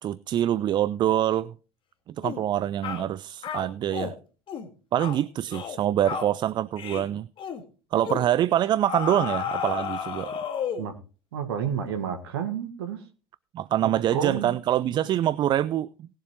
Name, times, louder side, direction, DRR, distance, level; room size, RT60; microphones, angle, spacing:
voice 1, 0.0-1.5 2.1-4.1 4.9-7.3 7.9-10.3 13.5-16.1, right 11 dB, 35° right, 0.4 m, -25 dB
sound 1, 2.2-2.4 2.8-3.1 3.4-4.1 4.5-4.7 5.0-5.2 5.5-5.8 6.0-6.3 6.8-7.1 7.4-7.6 8.0-8.3 8.9-10.9, left 7 dB, 40° left, 1.9 m, -32 dB
voice 2, 11.3-13.0 13.8-14.5, right 8 dB, 70° right, 1.7 m, -30 dB
19.0 x 7.4 x 3.1 m
figure-of-eight pair, 70°, 14 cm